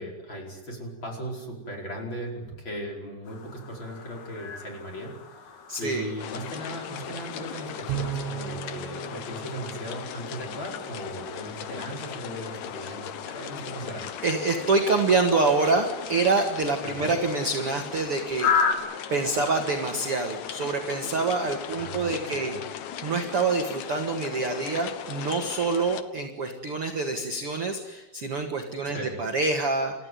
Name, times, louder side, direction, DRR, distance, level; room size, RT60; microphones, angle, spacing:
voice 1, 0.0-5.5 5.8-14.1 16.8-17.1 21.7-22.6 28.8-29.2, right 1 dB, 25° left, 0 dB, 5.4 m, -37 dB
sound 1, 3.2-18.7, left 6 dB, 65° left, 4.1 m, -36 dB
voice 2, 5.7-6.1 14.2-18.7 19.1-22.5 23.0-29.9, right 3 dB, 45° right, 4 dB, 2.0 m, -26 dB
sound 2, 6.2-26.0, left 9 dB, 90° left, 1.6 m, -38 dB
Bowed string instrument, 7.9-10.5, right 10 dB, 85° right, 3.4 m, -36 dB
29.5 x 14.5 x 9.5 m, 1.1 s
omnidirectional pair, 5.1 m